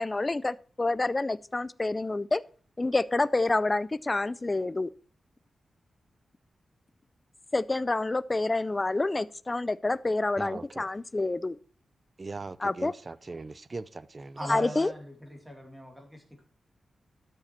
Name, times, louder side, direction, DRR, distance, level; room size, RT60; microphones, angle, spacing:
voice 1, 0.0-2.4 2.8-4.9 7.5-11.6 12.6-12.9 14.5-14.9, left 2 dB, 20° left, 19 dB, 0.4 m, -28 dB
voice 2, 10.4-10.9 12.2-14.6, right 3 dB, 30° right, 18 dB, 0.5 m, -40 dB
voice 3, 14.4-16.4, equal, 10° right, 2 dB, 2.5 m, -40 dB
12.5 x 6.5 x 4.4 m, 0.40 s
wide cardioid pair, 130°, 0 cm